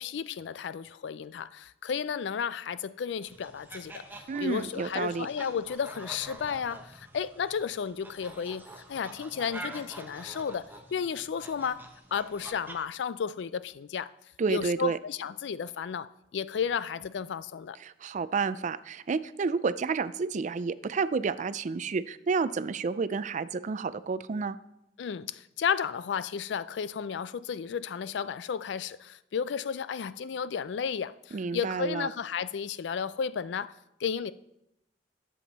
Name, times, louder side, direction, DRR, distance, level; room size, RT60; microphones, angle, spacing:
voice 1, 0.0-4.0 4.4-11.8 12.1-14.1 14.5-17.8 25.0-33.7 34.0-34.3, left 7 dB, 75° left, 0.4 m, -33 dB
sound 1, 3.2-12.8, right 1 dB, 10° right, 0.9 m, -46 dB
voice 2, 4.3-5.3 14.4-15.0 17.8-24.6 31.3-32.1, right 4 dB, 45° right, 0.4 m, -30 dB
10.5 x 7.2 x 4.1 m
head